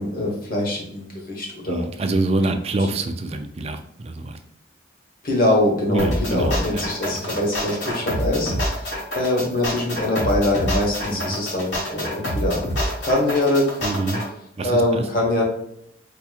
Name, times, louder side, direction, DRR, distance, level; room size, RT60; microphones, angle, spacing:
voice 1, 0.0-1.8 2.8-2.9 5.2-8.9 9.1-12.6 13.0-13.8 14.6-15.4, left 1 dB, 50° left, -1 dB, 1.1 m, -23 dB
voice 2, 1.7-3.8 4.0-4.4 5.9-6.8 7.3-7.4 11.3-11.4 13.8-14.2 14.6-15.0, right 2 dB, 35° right, 7 dB, 0.4 m, -25 dB
sound 1, 6.0-14.3, equal, 70° left, 1.4 m, -27 dB
4.7 x 2.8 x 2.3 m, 0.75 s
head